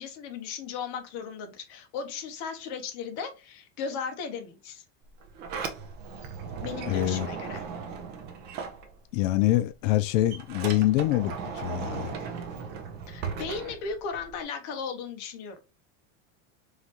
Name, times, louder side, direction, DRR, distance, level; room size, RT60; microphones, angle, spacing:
voice 1, 0.0-4.8 6.6-7.6 13.1-15.6, left 5 dB, 45° left, 0.9 m, -36 dB
Sliding door, 5.0-9.4 9.7-14.4, right 6 dB, 25° right, 0.5 m, -37 dB
voice 2, 6.9-7.3 9.1-12.1, left 15 dB, 75° left, 0.5 m, -25 dB
3.9 x 3.1 x 2.9 m
supercardioid pair, 165°, 38 cm